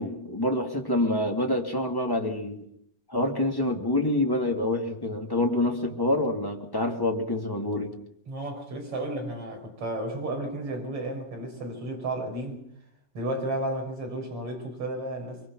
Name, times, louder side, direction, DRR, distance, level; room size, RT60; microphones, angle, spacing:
voice 1, 0.0-2.6 3.1-7.9, left 1 dB, 20° left, 0.6 m, -27 dB
voice 2, 8.3-12.6 13.1-15.5, right 1 dB, 35° right, 6.7 m, -33 dB
24.5 x 23.5 x 6.0 m
omnidirectional pair, 4.6 m